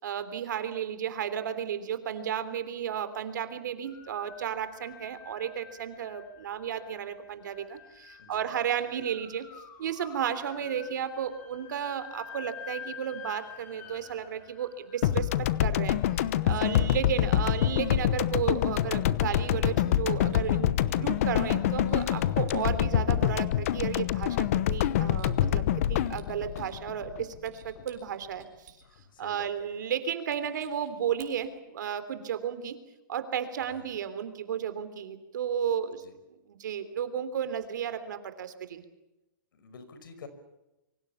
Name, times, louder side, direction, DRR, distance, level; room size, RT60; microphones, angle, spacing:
voice 1, 0.0-9.4 9.8-16.0 16.4-25.6 25.9-28.4 29.2-32.8 33.1-36.0 36.5-38.8, right 8 dB, 60° right, 11 dB, 3.2 m, -33 dB
sound 1, 3.8-16.9, left 7 dB, 15° left, 2.6 m, -49 dB
voice 2, 8.2-8.5 16.5-16.9 28.8-29.7 33.6-34.0 36.0-36.1 39.5-40.3, left 5 dB, 75° left, 11 dB, 5.4 m, -49 dB
sound 2, 15.0-27.5, left 11 dB, 40° left, 1.0 m, -26 dB
sound 3, 20.2-21.5 21.8-22.6 23.6-24.1 24.5-25.8 26.1-26.8 27.2-29.0 29.6-29.7 30.3-31.6, right 10 dB, 45° right, 5.6 m, -58 dB
26.0 x 24.5 x 7.0 m, 0.97 s
hypercardioid pair, 170°, 11 cm